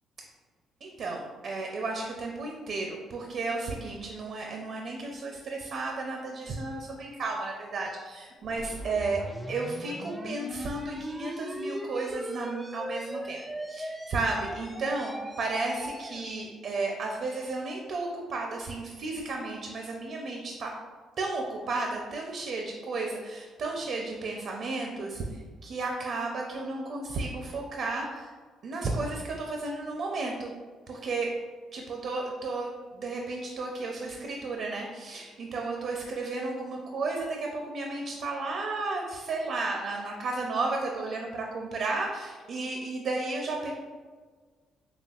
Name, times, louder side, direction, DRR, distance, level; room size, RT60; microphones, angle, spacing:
voice 1, 0.8-9.2 9.5-13.4 13.7-20.7 21.2-28.3 28.6-30.5 30.9-31.3 31.7-43.7, right 3 dB, 65° right, 0 dB, 0.5 m, -33 dB
sound 1, 8.4-16.2, right 1 dB, 10° right, 0.4 m, -39 dB
4.1 x 3.3 x 2.4 m, 1.5 s
cardioid pair, 90°, 0 cm